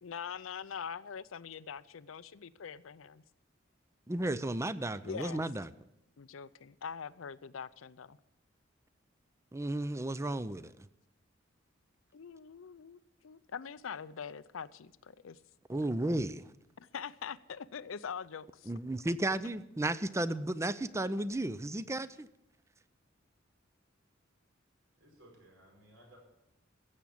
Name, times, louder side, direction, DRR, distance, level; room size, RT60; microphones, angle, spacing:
voice 1, 0.0-3.2 4.9-5.5 6.2-8.2 12.1-15.4 16.8-18.7, left 6 dB, 85° left, 17 dB, 0.5 m, -43 dB
voice 2, 4.1-5.7 9.5-10.7 15.7-16.5 18.7-22.3, right 1 dB, 15° right, 15 dB, 0.5 m, -34 dB
voice 3, 25.0-26.2, right 1 dB, 75° right, 0 dB, 5.4 m, -59 dB
15.5 x 7.3 x 8.5 m, 0.86 s
head